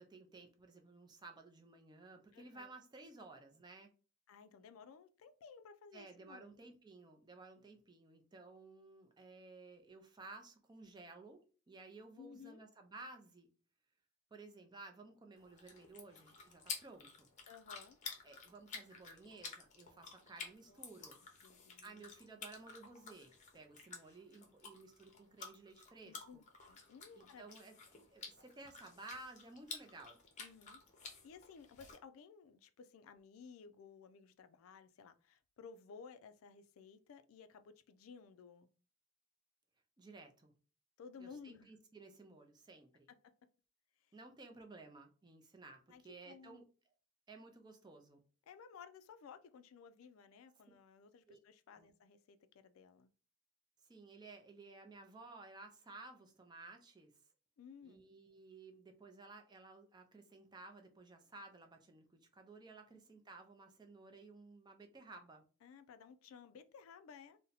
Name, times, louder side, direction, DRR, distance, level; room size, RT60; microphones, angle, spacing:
voice 1, 0.0-3.9 5.9-13.5 14.3-17.3 18.2-21.2 21.8-26.4 27.1-27.7 28.1-30.2 40.0-40.5 41.2-43.1 44.1-46.7 47.3-48.2 51.3-51.4 51.7-51.9 53.9-57.1 57.8-65.4, right 3 dB, 20° right, 0.4 m, -56 dB
voice 2, 2.3-2.7 4.3-6.6 12.2-12.6 17.4-18.0 20.7-21.1 21.4-22.0 26.0-27.5 30.4-30.8 31.2-38.7 41.0-41.7 45.9-46.6 48.5-53.1 57.6-58.0 65.6-67.4, left 6 dB, 80° left, 0.3 m, -57 dB
sound 1, 15.4-32.0, left 5 dB, 35° left, 0.6 m, -52 dB
2.7 x 2.1 x 3.9 m
head